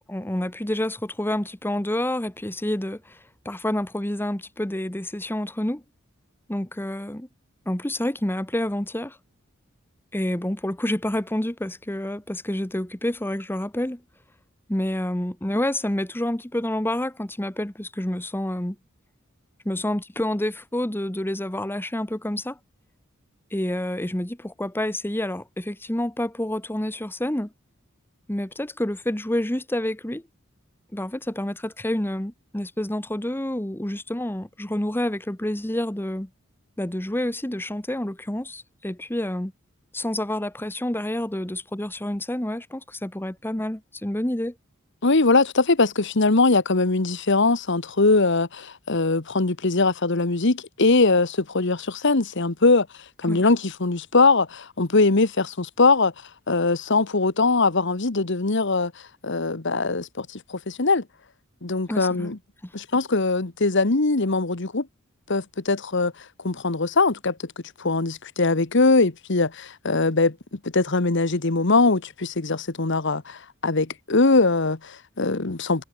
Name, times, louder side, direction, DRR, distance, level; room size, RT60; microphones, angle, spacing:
voice 1, 0.0-3.2 3.4-5.8 6.5-7.3 7.7-9.2 10.1-14.0 14.7-18.8 19.6-22.6 23.5-27.5 28.3-30.2 30.9-36.3 36.8-39.5 39.9-44.5 53.3-53.4 61.9-62.3 62.6-62.7, left 1 dB, 10° left, 1.2 m, -28 dB
voice 2, 45.0-52.9 53.2-56.1 56.5-58.9 59.2-61.0 61.6-62.4 62.7-64.9 65.3-66.1 66.4-67.3 67.8-75.8, left 3 dB, 60° left, 1.4 m, -21 dB
head